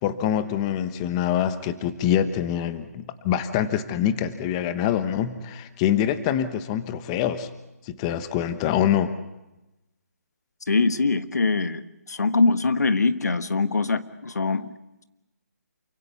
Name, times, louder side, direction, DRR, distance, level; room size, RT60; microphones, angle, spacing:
voice 1, 0.0-7.5 7.8-9.1, left 10 dB, 20° left, 11 dB, 1.1 m, -25 dB
voice 2, 10.7-14.7, left 3 dB, 90° left, 12 dB, 1.4 m, -23 dB
28.5 x 16.5 x 8.2 m, 0.98 s
hypercardioid pair, 160°, 9 cm